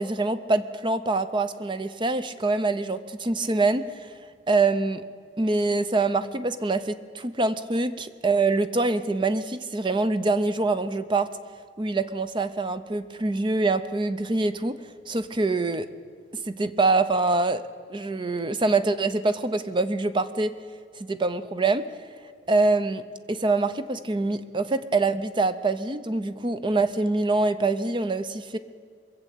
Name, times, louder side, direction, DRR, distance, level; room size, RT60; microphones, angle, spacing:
voice 1, 0.0-3.8 4.5-5.0 5.4-11.3 11.8-14.8 15.1-15.9 16.5-17.6 17.9-20.5 21.0-21.8 22.5-28.6, right 3 dB, 30° right, 12 dB, 0.6 m, -25 dB
22.5 x 7.5 x 8.3 m, 2.1 s
head